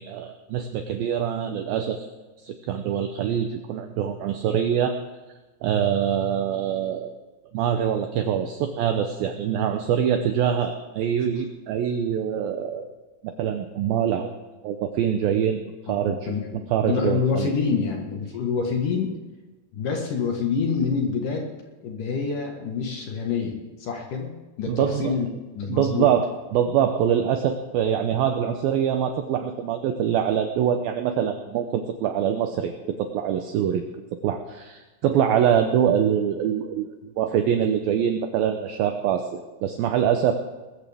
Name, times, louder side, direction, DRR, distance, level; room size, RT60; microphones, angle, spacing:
voice 1, 0.0-2.0 2.4-5.0 5.6-7.1 7.5-12.9 13.2-14.3 14.6-16.3 16.7-17.5 24.7-25.1 25.7-33.8 34.2-40.3, right 9 dB, 80° right, 6 dB, 2.1 m, -24 dB
voice 2, 15.9-19.1 19.7-21.5 21.8-24.3 24.6-25.3 25.5-26.1, left 5 dB, 60° left, 1 dB, 2.6 m, -27 dB
20.5 x 14.5 x 3.5 m, 1.2 s
omnidirectional pair, 5.2 m